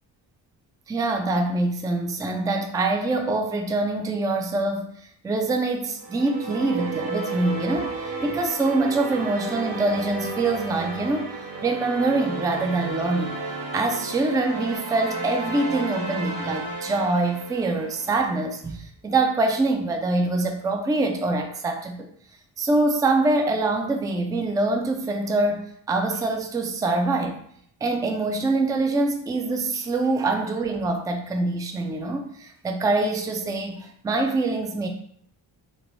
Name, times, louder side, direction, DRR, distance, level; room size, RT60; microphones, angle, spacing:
voice 1, 0.9-11.3 11.6-13.4 13.7-22.1 22.6-27.4 27.8-34.9, right 2 dB, 10° right, 4 dB, 0.3 m, -24 dB
sound 1, 6.0-18.4, right 3 dB, 45° right, 1.0 m, -33 dB
3.1 x 2.0 x 2.7 m, 0.64 s
supercardioid pair, 55°, 46 cm